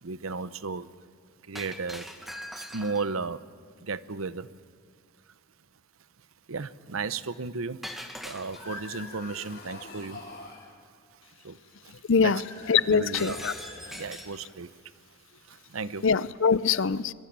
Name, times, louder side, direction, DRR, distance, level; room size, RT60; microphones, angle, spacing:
voice 1, 0.0-0.9 1.4-2.1 2.5-3.5 3.8-4.5 6.5-7.8 8.2-10.3 11.4-11.6 11.8-11.9 12.2-12.4 12.9-13.4 13.9-14.7 15.5-16.0, right 4 dB, 85° right, 0.8 m, -34 dB
Shatter, 1.6-3.2 7.8-8.9 13.1-14.4, equal, ahead, 1.5 m, -41 dB
sound 1, 8.3-10.7 12.1-14.6, left 3 dB, 45° left, 4.5 m, -44 dB
voice 2, 12.1-12.4 12.7-13.5 16.0-17.1, left 5 dB, 70° left, 0.6 m, -23 dB
23.0 x 22.5 x 8.8 m
head